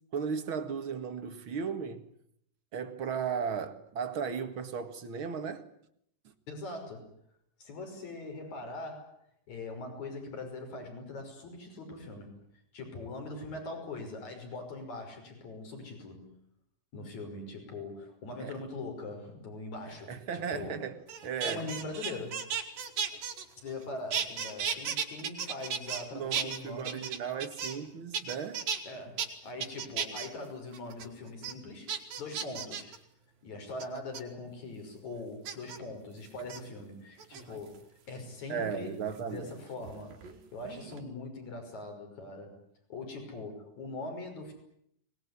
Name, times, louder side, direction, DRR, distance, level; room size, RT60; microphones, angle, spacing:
voice 1, 0.1-2.1 2.7-5.7 18.4-18.6 20.1-21.7 26.1-28.7 38.5-39.5, right 6 dB, 45° right, 2.1 m, -36 dB
voice 2, 6.5-7.1 7.6-9.1 9.5-12.4 12.7-16.3 16.9-20.8 21.4-22.5 23.6-27.0 28.9-31.9 32.2-32.9 33.4-37.8 38.1-40.2 40.5-42.6 42.9-44.5, left 2 dB, 55° left, 7.1 m, -42 dB
sound 1, 21.1-23.8 24.1-26.0 26.3-27.9 28.1-28.8 29.2-29.3 29.6-30.3 30.7-31.1 31.4-31.5 31.9-33.0 33.8-34.2 35.5-35.8 36.4-36.6 37.2-37.8 39.2-40.4 40.6-41.0, right 7 dB, 80° right, 4.4 m, -35 dB
24.0 x 20.5 x 9.9 m
omnidirectional pair, 4.0 m